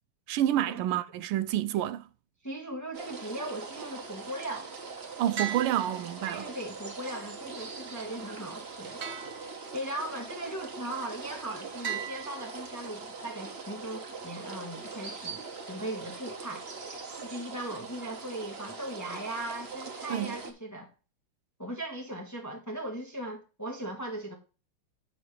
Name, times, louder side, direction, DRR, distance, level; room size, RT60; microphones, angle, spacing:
voice 1, 0.3-2.1 5.2-6.5 20.1-20.4, right 12 dB, 85° right, 1.5 m, -28 dB
voice 2, 2.4-4.7 6.2-9.0 9.7-15.4 15.7-16.7 17.2-20.9 21.6-24.3, right 1 dB, 10° left, 1.1 m, -38 dB
sound 1, 2.9-20.5, right 4 dB, 35° right, 1.2 m, -42 dB
sound 2, 5.4-6.6 9.0-10.1 11.8-13.1, right 8 dB, 55° right, 0.7 m, -39 dB
8.6 x 6.9 x 3.3 m
omnidirectional pair, 2.3 m